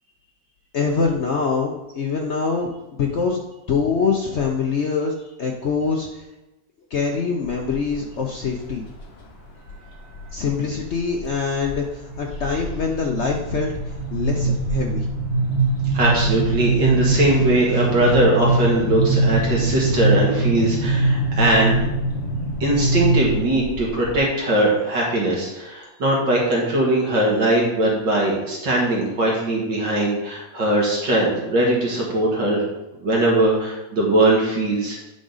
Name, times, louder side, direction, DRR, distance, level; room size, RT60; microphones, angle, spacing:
voice 1, 0.7-3.4 3.7-6.2 6.9-8.8 10.3-13.7 14.1-15.1, left 5 dB, 65° left, 1 dB, 0.6 m, -24 dB
sound 1, 7.4-8.0 8.5-9.0 9.7-10.5 10.9-11.3 11.6-24.2, right 2 dB, 90° left, 2.1 m, -23 dB
voice 2, 15.9-21.8 22.6-32.6 33.0-35.0, right 1 dB, 70° right, -3 dB, 2.4 m, -20 dB
8.7 x 4.9 x 4.0 m, 1.0 s
omnidirectional pair, 2.0 m